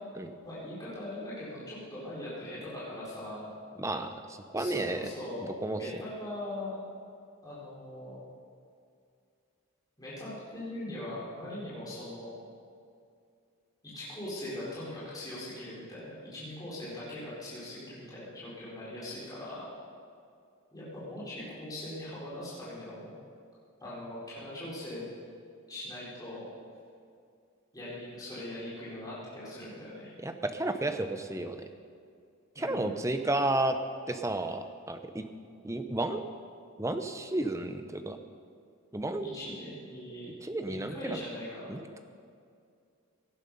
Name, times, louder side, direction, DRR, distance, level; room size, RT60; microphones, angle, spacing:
voice 1, 0.4-3.5 4.6-6.7 7.4-8.1 10.0-12.3 13.8-19.7 20.7-23.1 23.8-25.0 25.7-26.5 27.7-30.1 32.5-33.0 39.2-40.3 40.6-41.8, left 1 dB, 15° left, -9 dB, 4.4 m, -41 dB
voice 2, 3.8-4.1 4.5-5.1 5.4-5.8 30.2-31.6 32.6-33.8 34.1-35.2 35.6-36.2 36.8-38.2 38.9-39.3 40.4-41.2 41.7-42.0, right 2 dB, 15° right, 7 dB, 0.7 m, -32 dB
17.5 x 10.5 x 5.5 m, 2.3 s
head